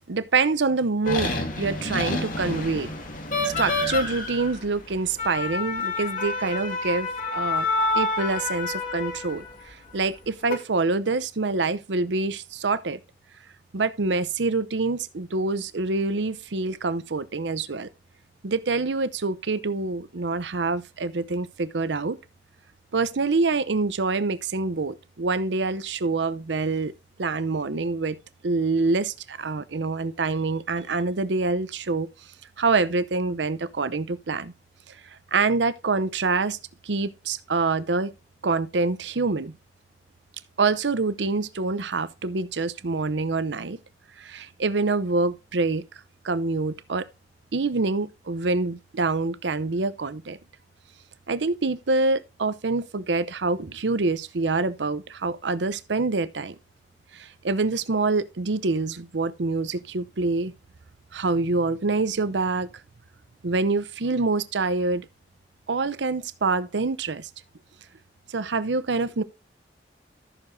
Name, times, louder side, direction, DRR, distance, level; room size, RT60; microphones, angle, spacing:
voice 1, 0.1-2.9 3.4-7.7 7.9-13.0 13.7-17.9 18.4-22.2 22.9-26.9 27.2-28.2 28.4-32.1 32.6-34.5 35.3-36.6 36.8-38.1 38.4-39.6 40.6-43.8 44.2-45.8 46.2-47.1 47.5-50.4 51.3-56.5 57.1-60.5 61.1-62.7 63.4-65.1 65.7-67.3 68.3-69.2, right 3 dB, 85° right, 0.7 m, -26 dB
sound 1, 1.0-9.5 10.2-10.5, left 3 dB, 50° left, 2.2 m, -28 dB
14.0 x 6.8 x 2.7 m
head